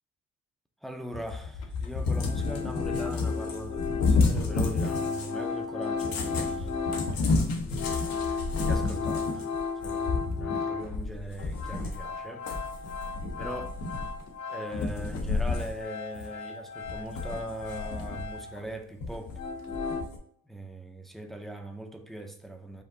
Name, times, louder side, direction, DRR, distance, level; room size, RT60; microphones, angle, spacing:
voice 1, 0.8-6.8 8.1-9.5 9.7-12.5 13.4-13.7 14.5-19.3 20.5-22.8, right 1 dB, ahead, 0.5 m, -40 dB
Cat, 1.1-5.4 5.9-12.1 12.5-14.3 14.7-15.8 16.1-16.3 16.8-18.4 19.0-20.2, left 3 dB, 85° left, 0.9 m, -31 dB
sound 1, 1.6-1.7 2.1-11.0 11.3-14.9 15.1-18.8 19.1-20.0, left 5 dB, 50° left, 0.7 m, -35 dB
5.0 x 2.6 x 3.7 m
cardioid pair, 125°, 34 cm